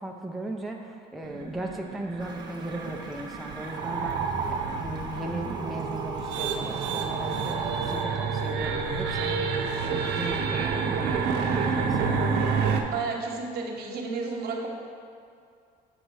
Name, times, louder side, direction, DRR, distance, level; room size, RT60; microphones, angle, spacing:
voice 1, 0.0-12.7, right 1 dB, ahead, 0 dB, 0.5 m, -37 dB
sound 1, 1.2-12.8, right 5 dB, 85° right, 0.6 m, -29 dB
Toilet flush, 2.2-8.0, right 2 dB, 25° right, 0.9 m, -46 dB
voice 2, 12.9-14.7, right 4 dB, 70° right, 0 dB, 1.0 m, -32 dB
7.4 x 3.9 x 4.7 m, 2.3 s
cardioid pair, 110°, 17 cm